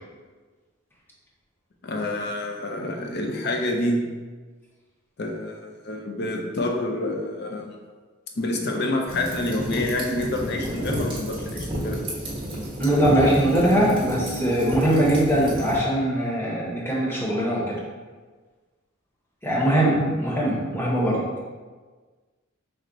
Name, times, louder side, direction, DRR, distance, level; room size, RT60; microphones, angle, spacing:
voice 1, 1.8-4.0 5.2-7.8 8.4-12.0 20.1-20.2, left 1 dB, 55° left, 2 dB, 0.6 m, -27 dB
sound 1, 9.1-15.8, right 1 dB, 25° right, 1.2 m, -31 dB
voice 2, 12.8-17.7 19.4-21.2, right 1 dB, 10° left, -5 dB, 0.9 m, -21 dB
5.9 x 2.0 x 3.9 m, 1.4 s
head